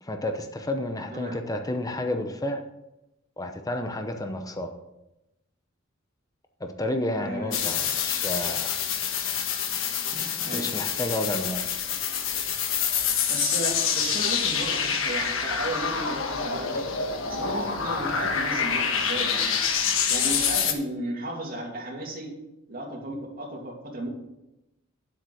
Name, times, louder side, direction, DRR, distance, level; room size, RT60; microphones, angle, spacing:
voice 1, 0.0-2.6 3.4-4.7 6.6-8.8 10.1-11.7, left 1 dB, 20° left, 5 dB, 0.8 m, -31 dB
voice 2, 7.2-7.6 10.4-10.7 13.3-16.8 17.3-19.6 20.1-22.3 22.7-24.1, right 1 dB, 45° right, -1 dB, 2.7 m, -34 dB
sound 1, 7.5-20.7, left 7 dB, 80° left, 1.3 m, -27 dB
9.6 x 7.7 x 6.3 m, 0.94 s
head